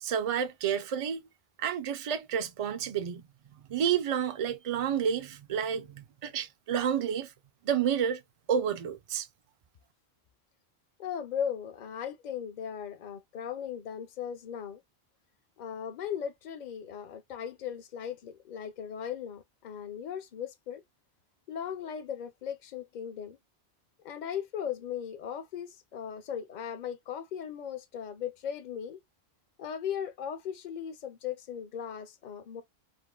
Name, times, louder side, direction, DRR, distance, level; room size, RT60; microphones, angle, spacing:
voice 1, 0.0-1.2 1.6-3.2 3.7-7.3 7.6-8.2 8.5-9.3, right 8 dB, 50° right, 0.4 m, -30 dB
voice 2, 11.0-14.8 15.6-20.8 21.5-23.4 24.0-29.0 29.6-32.6, left 8 dB, 55° left, 0.6 m, -37 dB
3.6 x 2.1 x 2.2 m
omnidirectional pair, 1.1 m